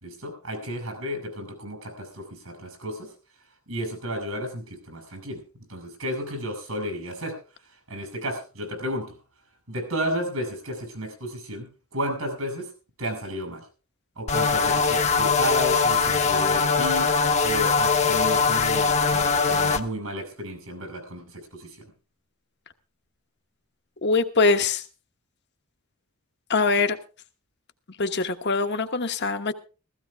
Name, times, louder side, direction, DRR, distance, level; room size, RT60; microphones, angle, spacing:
voice 1, 0.0-3.1 3.7-5.4 5.7-9.2 9.7-12.7 13.0-13.7 14.2-17.1 17.4-21.9, equal, 80° right, 5.5 m, -33 dB
sound 1, 14.3-19.8, left 5 dB, 30° left, 1.0 m, -21 dB
voice 2, 24.0-24.8 26.5-27.0 28.0-29.5, left 4 dB, 50° left, 1.2 m, -23 dB
16.0 x 15.5 x 3.4 m
head